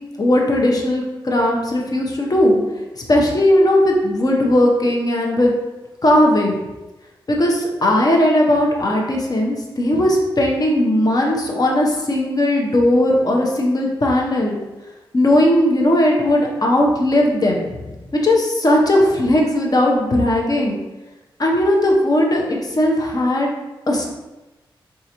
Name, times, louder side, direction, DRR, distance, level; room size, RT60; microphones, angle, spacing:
voice 1, 0.2-2.6 3.1-5.5 6.0-6.6 7.3-14.6 15.1-17.7 18.1-20.8 21.4-23.5 23.9-24.1, left 1 dB, 40° left, 0 dB, 0.8 m, -17 dB
3.9 x 2.5 x 2.9 m, 1.1 s
cardioid pair, 50°, 9 cm